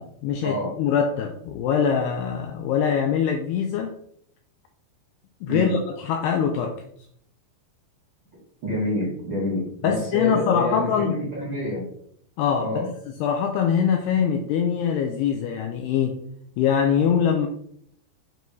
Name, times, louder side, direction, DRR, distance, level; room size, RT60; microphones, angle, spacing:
voice 1, 0.0-3.9 5.4-6.8 9.8-11.2 12.4-16.2 16.6-17.5, left 7 dB, 85° left, 4 dB, 2.3 m, -23 dB
voice 2, 8.6-11.8 12.6-12.9, left 1 dB, 75° right, -7 dB, 1.0 m, -27 dB
7.9 x 4.6 x 2.7 m, 0.68 s
omnidirectional pair, 5.2 m